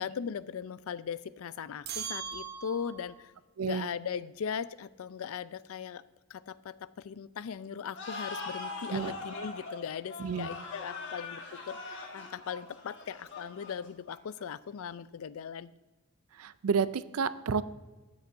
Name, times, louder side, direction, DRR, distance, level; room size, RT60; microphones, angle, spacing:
voice 1, 0.0-3.3 3.6-6.0 6.3-15.7, left 7 dB, 70° left, 17 dB, 0.4 m, -39 dB
sound 1, 1.8-3.2, right 7 dB, 45° right, 0.9 m, -39 dB
voice 2, 3.6-3.9 8.9-9.1 10.2-10.5 16.4-17.6, right 6 dB, 75° right, 16 dB, 0.5 m, -30 dB
sound 2, 7.9-14.4, left 3 dB, 55° left, 1.4 m, -42 dB
12.5 x 9.4 x 2.6 m, 1.2 s
head